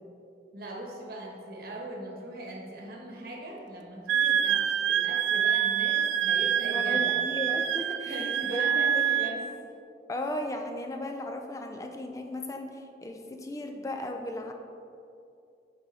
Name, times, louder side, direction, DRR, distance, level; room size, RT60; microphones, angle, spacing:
voice 1, 0.5-7.2 8.1-9.4, right 1 dB, 55° right, -1 dB, 1.1 m, -40 dB
Wind instrument woodwind instrument, 4.1-9.4, right 9 dB, 90° right, 0.3 m, -26 dB
voice 2, 6.6-9.0 10.1-14.5, left 1 dB, 20° left, 4 dB, 0.4 m, -36 dB
6.3 x 4.8 x 4.0 m, 2.6 s
head